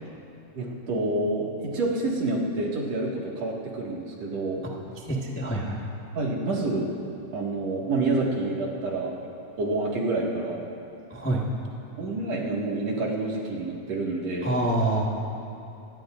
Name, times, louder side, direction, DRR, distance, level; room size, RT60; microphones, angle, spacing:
voice 1, 0.5-4.6 6.1-6.9 7.3-9.1 9.6-10.6 12.0-14.5, right 2 dB, 65° right, -3 dB, 3.1 m, -28 dB
voice 2, 5.0-5.8 11.1-11.5 14.4-15.1, right 1 dB, 10° left, -3 dB, 0.5 m, -26 dB
26.0 x 17.5 x 2.6 m, 2.8 s
omnidirectional pair, 3.3 m